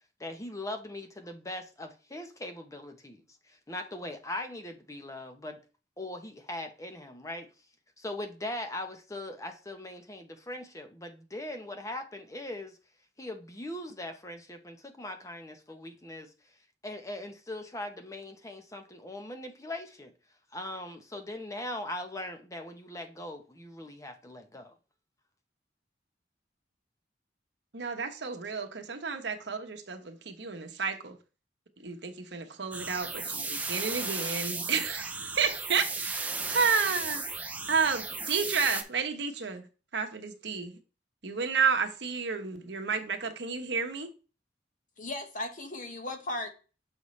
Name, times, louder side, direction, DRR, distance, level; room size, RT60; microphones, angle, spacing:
voice 1, 0.2-5.6 6.0-7.5 8.0-12.8 13.2-16.3 16.8-20.1 20.5-24.7, left 1 dB, 20° left, 0.8 m, -40 dB
voice 2, 27.7-31.2 31.8-39.7 39.9-40.8 41.2-44.1, right 5 dB, 70° right, 1.0 m, -31 dB
sound 1, 32.7-38.8, right 3 dB, 10° right, 0.5 m, -35 dB
voice 3, 45.0-46.5, left 2 dB, 45° left, 1.2 m, -36 dB
6.6 x 5.4 x 3.2 m
head